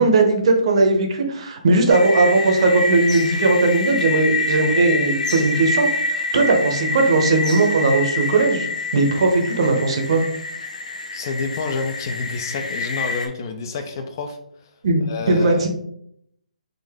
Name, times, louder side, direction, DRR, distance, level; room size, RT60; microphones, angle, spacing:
voice 1, 0.0-8.7 8.9-10.2 14.8-15.7, right 3 dB, 45° right, 3 dB, 0.8 m, -18 dB
sound 1, 1.9-13.3, left 2 dB, 60° left, 0.7 m, -26 dB
voice 2, 11.1-14.4 15.1-15.7, left 4 dB, 30° left, 6 dB, 0.3 m, -28 dB
3.8 x 2.5 x 3.5 m, 0.71 s
hypercardioid pair, 165°, 4 cm